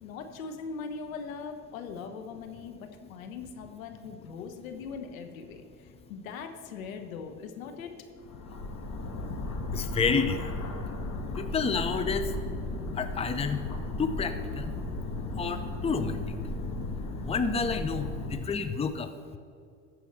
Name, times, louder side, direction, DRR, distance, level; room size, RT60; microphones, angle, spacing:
voice 1, 0.0-7.9, left 5 dB, 85° left, 6 dB, 1.2 m, -40 dB
sound 1, 8.2-18.4, left 2 dB, 45° left, 1.9 m, -35 dB
voice 2, 9.7-10.6 11.0-11.1 11.3-12.4 12.9-13.6 14.0-14.8 15.3-16.3 17.2-19.4, left 5 dB, 15° left, 9 dB, 0.7 m, -30 dB
14.0 x 4.8 x 6.7 m, 2.4 s
hypercardioid pair, 85°, 40 cm